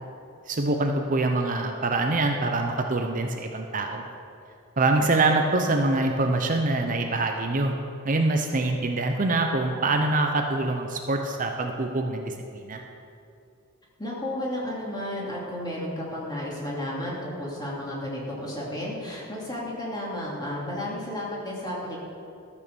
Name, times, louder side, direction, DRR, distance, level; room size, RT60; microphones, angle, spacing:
voice 1, 0.5-4.1 4.8-7.7 8.0-12.8, right 2 dB, 40° right, 3 dB, 0.7 m, -25 dB
voice 2, 14.0-22.0, left 1 dB, 20° left, -5 dB, 2.8 m, -32 dB
13.5 x 6.4 x 6.9 m, 2.5 s
head